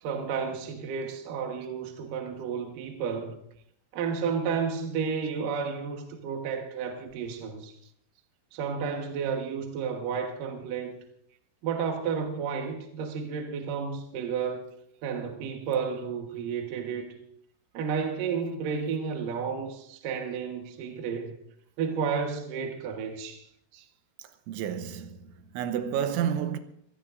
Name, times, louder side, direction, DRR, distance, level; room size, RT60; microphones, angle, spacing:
voice 1, 0.0-3.4 3.9-7.7 8.5-11.0 11.6-14.7 15.0-17.1 17.7-21.4 21.8-23.5, right 6 dB, 65° right, 2.3 m, -32 dB
voice 2, 24.2-26.6, right 9 dB, 85° right, 3.3 m, -31 dB
24.5 x 17.5 x 2.6 m
omnidirectional pair, 5.5 m